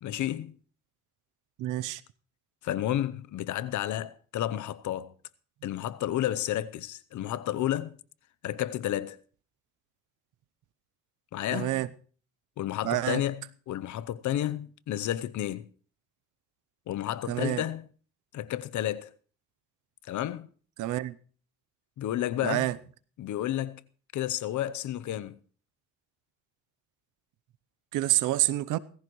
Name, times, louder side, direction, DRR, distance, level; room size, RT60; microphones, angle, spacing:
voice 1, 0.0-0.5 2.6-5.1 5.6-8.0 8.4-9.2 11.3-11.8 12.6-15.7 16.9-17.9 18.3-19.1 20.0-20.5 22.0-22.7 23.2-23.8 24.1-25.4, left 12 dB, 75° left, 0.8 m, -31 dB
voice 2, 1.6-2.0 11.5-11.9 12.8-13.2 17.3-17.6 20.8-21.2 22.4-22.8 27.9-28.8, right 15 dB, 90° right, 0.7 m, -28 dB
17.0 x 15.0 x 3.1 m
cardioid pair, 90°, 30 cm